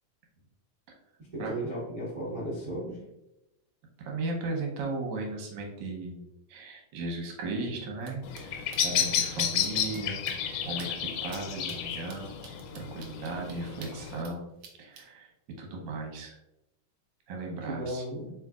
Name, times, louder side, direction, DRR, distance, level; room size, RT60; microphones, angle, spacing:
voice 1, 1.3-3.0 17.6-18.3, right 1 dB, 55° right, -8 dB, 0.9 m, -35 dB
voice 2, 4.1-6.2 6.5-10.2 10.7-14.5 14.8-15.3 15.6-16.4 17.3-18.0, right 2 dB, 75° right, 0 dB, 2.0 m, -36 dB
sound 1, 8.0-8.1 8.3-8.4 8.7-9.0 9.4-10.0 10.3-10.4 10.8-10.9 11.3-11.4 11.7-14.3 14.6-15.0, right 5 dB, 90° right, 1.3 m, -47 dB
Bird vocalization bird call bird song, 8.2-14.2, left 8 dB, 80° left, 2.0 m, -32 dB
4.6 x 3.9 x 2.3 m, 0.90 s
omnidirectional pair, 3.6 m